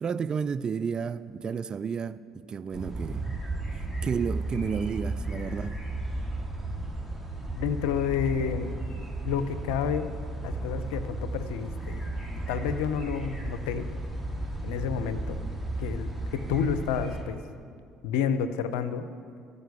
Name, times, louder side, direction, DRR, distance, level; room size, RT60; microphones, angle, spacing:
voice 1, 0.0-3.3 3.7-5.7, right 6 dB, 40° right, 0.4 m, -32 dB
sound 1, 2.7-17.2, right 2 dB, ahead, 2.0 m, -34 dB
voice 2, 7.5-8.8 9.2-10.1 10.4-13.9 14.6-15.4 15.8-17.4 18.0-19.0, left 7 dB, 80° left, 0.6 m, -30 dB
13.0 x 5.3 x 8.1 m
hypercardioid pair, 60°, 2 cm